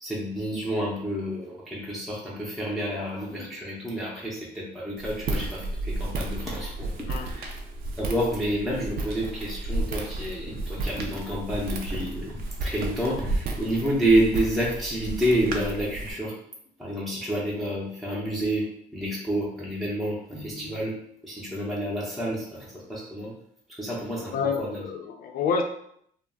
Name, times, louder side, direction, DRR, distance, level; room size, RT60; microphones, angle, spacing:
voice 1, 0.0-7.5 8.0-16.3 16.8-18.7 18.9-23.3 23.7-24.9, right 1 dB, ahead, -5 dB, 0.6 m, -29 dB
Walk footsteps, 5.0-16.1, right 2 dB, 60° right, 0.5 m, -32 dB
voice 2, 24.3-25.6, left 5 dB, 60° left, 5 dB, 0.5 m, -28 dB
2.3 x 2.0 x 3.5 m, 0.69 s
cardioid pair, 110°, 17 cm